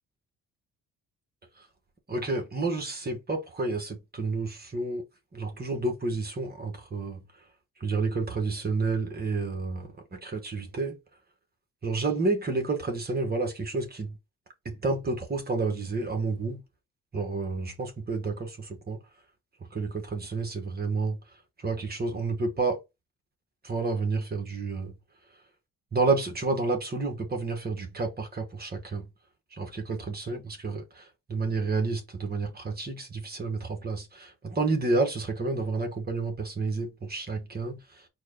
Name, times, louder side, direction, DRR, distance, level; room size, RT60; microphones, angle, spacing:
voice 1, 2.1-5.0 5.3-7.4 7.8-11.0 11.8-14.2 14.6-16.6 17.1-19.0 19.7-21.2 21.6-22.8 23.6-25.0 25.9-29.1 29.5-38.1, right 3 dB, 30° right, 1.5 m, -30 dB
4.6 x 2.5 x 4.4 m
cardioid pair, 90°, 30 cm